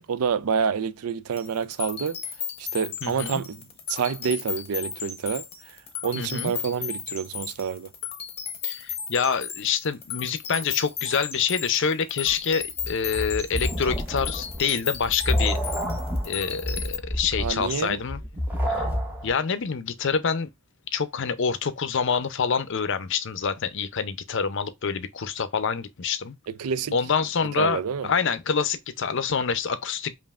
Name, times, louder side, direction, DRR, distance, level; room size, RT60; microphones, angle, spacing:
voice 1, 0.0-2.2 2.6-3.6 3.9-5.8 6.0-7.9 17.4-18.0 26.5-26.9 27.6-28.1, right 6 dB, 80° right, 0.4 m, -28 dB
sound 1, 1.3-17.0, left 7 dB, 25° left, 0.8 m, -35 dB
voice 2, 3.0-3.4 6.2-6.5 8.6-15.6 16.2-18.2 18.7-18.9 19.2-20.5 20.9-26.3 26.9-30.1, left 6 dB, 55° left, 0.5 m, -26 dB
sound 2, 12.3-19.3, equal, 10° right, 0.8 m, -29 dB
5.4 x 2.5 x 2.4 m
head